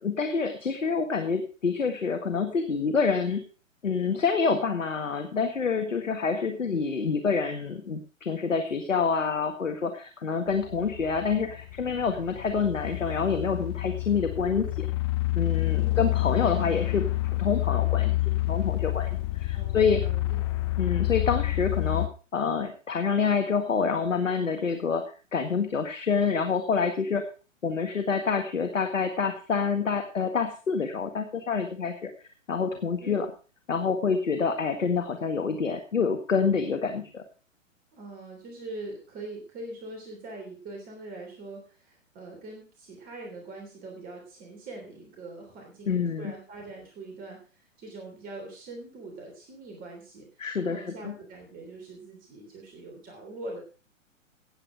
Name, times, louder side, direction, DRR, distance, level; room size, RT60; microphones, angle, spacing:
voice 1, 0.0-3.4 3.8-14.8 15.4-18.2 18.4-20.0 20.8-25.0 25.3-27.2 27.6-32.1 32.5-33.3 33.7-37.2 45.9-46.3 50.4-51.1, left 5 dB, 70° left, 6 dB, 1.9 m, -27 dB
sound 1, 10.5-22.1, left 18 dB, 20° left, 0.7 m, -28 dB
voice 2, 15.7-16.1 19.5-20.4 33.0-33.3 37.9-53.6, right 2 dB, 20° right, 1 dB, 3.3 m, -43 dB
17.0 x 8.8 x 4.8 m, 0.36 s
figure-of-eight pair, 120°, 40 cm